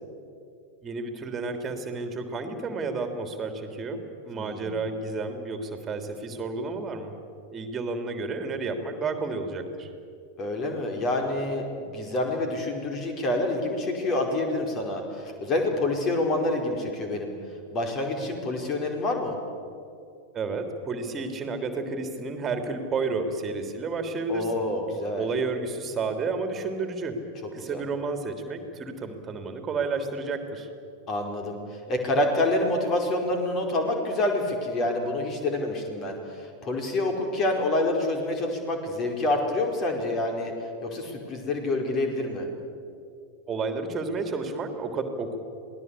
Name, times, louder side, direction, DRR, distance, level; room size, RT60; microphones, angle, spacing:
voice 1, 0.8-7.2 7.5-9.9 20.3-24.7 25.1-27.2 27.5-30.7 43.5-45.4, right 3 dB, 20° right, 6 dB, 3.3 m, -31 dB
voice 2, 4.3-4.8 10.4-17.3 17.7-19.4 24.3-25.2 27.6-27.8 31.1-40.5 40.8-42.5, left 2 dB, 30° left, 3 dB, 4.9 m, -27 dB
27.0 x 19.0 x 8.5 m, 2.5 s
figure-of-eight pair, 90°, 0 cm